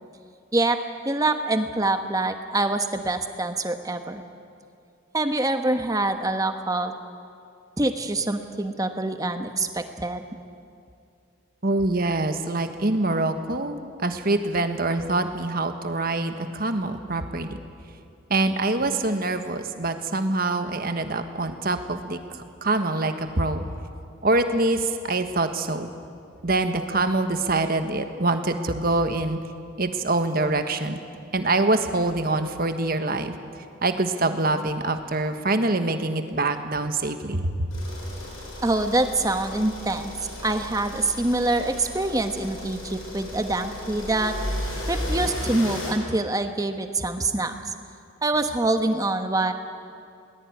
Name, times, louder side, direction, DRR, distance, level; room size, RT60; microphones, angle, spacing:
voice 1, 0.5-4.2 5.1-6.9 7.8-10.2 38.6-40.1 40.4-44.3 44.9-47.7 48.2-49.5, right 2 dB, 15° right, 7 dB, 1.2 m, -25 dB
voice 2, 11.6-17.6 18.3-22.2 22.6-23.7 24.2-25.9 26.4-29.4 29.8-31.0 31.3-33.3 33.8-37.7, right 2 dB, 45° right, 7 dB, 1.5 m, -25 dB
sound 1, 37.7-45.9, left 1 dB, 85° left, 7.9 m, -34 dB
22.0 x 20.0 x 9.6 m, 2.4 s
head